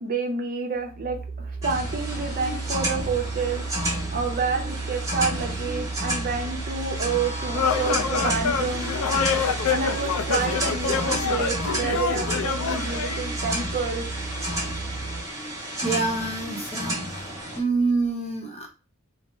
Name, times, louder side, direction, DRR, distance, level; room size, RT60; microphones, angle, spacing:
voice 1, 0.0-3.6 4.1-8.9 9.7-14.1, right 4 dB, 40° right, 3 dB, 0.6 m, -29 dB
sound 1, 0.8-15.2, right 4 dB, 55° left, 0.9 m, -34 dB
sound 2, 1.6-17.6, right 1 dB, 15° right, 1.0 m, -31 dB
sound 3, 7.5-13.2, left 6 dB, 75° left, 0.4 m, -26 dB
voice 2, 15.8-17.3 17.6-18.7, right 3 dB, 30° left, 1 dB, 0.9 m, -26 dB
4.2 x 2.0 x 3.3 m, 0.33 s
head